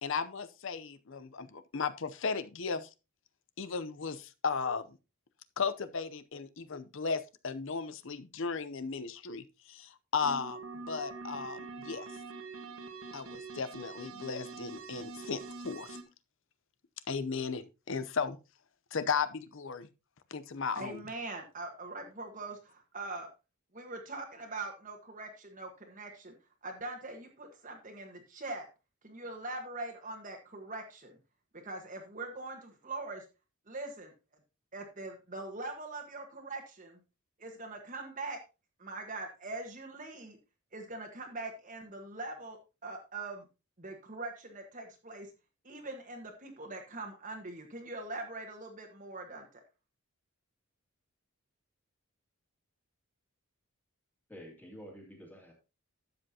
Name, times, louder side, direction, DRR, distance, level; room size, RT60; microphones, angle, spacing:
voice 1, 0.0-2.9 3.6-5.0 5.6-10.6 10.9-12.1 13.1-16.0 17.1-18.4 18.9-19.9 20.3-21.0, left 5 dB, 55° left, 0.6 m, -35 dB
sound 1, 10.2-16.0, right 4 dB, 70° right, 1.4 m, -44 dB
voice 2, 20.7-23.3 23.7-26.4 26.6-28.7 29.0-31.1 31.6-33.2 33.7-34.1 34.7-37.0 37.4-38.4 38.8-40.4 40.7-43.4 43.8-45.3 45.6-49.6, right 2 dB, 35° right, 1.4 m, -42 dB
voice 3, 54.3-55.5, equal, 10° left, 2.3 m, -49 dB
12.5 x 7.6 x 2.8 m
head